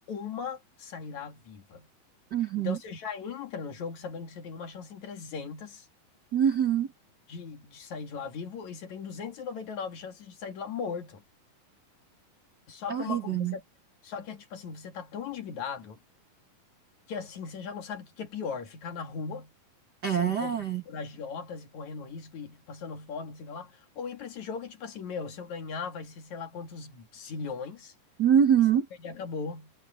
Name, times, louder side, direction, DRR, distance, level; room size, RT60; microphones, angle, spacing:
voice 1, 0.0-1.9 2.6-5.9 7.3-11.2 12.7-13.6 14.0-16.0 17.1-19.5 20.1-27.9 29.0-29.7, left 5 dB, 55° left, 3.2 m, -38 dB
voice 2, 2.3-2.8 6.3-6.9 12.9-13.5 20.0-20.8 28.2-28.9, right 9 dB, 70° right, 0.9 m, -24 dB
omnidirectional pair, 4.2 m